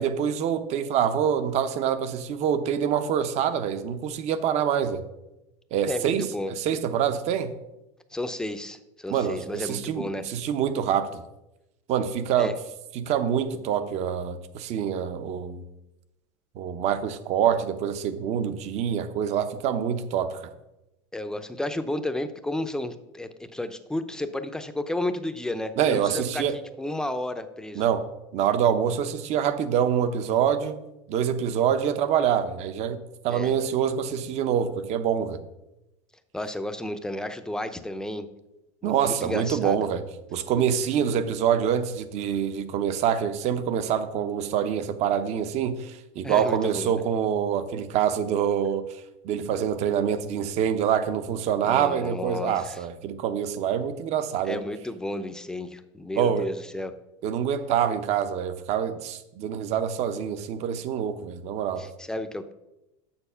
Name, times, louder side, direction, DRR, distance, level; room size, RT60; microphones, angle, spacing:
voice 1, 0.0-5.0 5.7-7.5 9.1-11.2 11.9-12.6 12.9-15.7 16.5-20.4 25.8-26.6 27.8-28.1 28.3-30.8 31.1-35.4 38.8-40.1 40.3-48.9 49.2-54.6 56.2-56.5 57.2-61.9, right 8 dB, 45° right, 0.8 m, -26 dB
voice 2, 5.9-6.5 8.1-10.3 12.4-12.5 21.1-27.8 33.3-33.5 36.3-38.3 38.8-39.8 46.2-46.9 51.6-52.8 54.4-56.9 61.8-62.5, left 1 dB, 5° left, 0.6 m, -32 dB
7.0 x 6.2 x 5.6 m
supercardioid pair, 125°, 15 cm